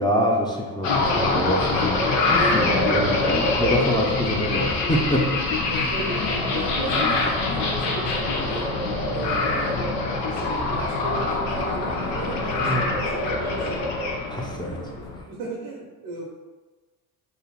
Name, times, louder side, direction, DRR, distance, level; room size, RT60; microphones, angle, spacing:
voice 1, 0.0-5.7 12.6-12.9 14.3-14.8, equal, 10° left, -2 dB, 0.6 m, -26 dB
sound 1, 0.8-15.2, left 2 dB, 80° left, 0.8 m, -24 dB
voice 2, 5.7-8.7 9.1-9.8 10.2-13.8 14.3-15.0 15.3-16.3, right 3 dB, 90° right, -3 dB, 0.8 m, -36 dB
2.9 x 2.6 x 4.0 m, 1.3 s
supercardioid pair, 65°, 42 cm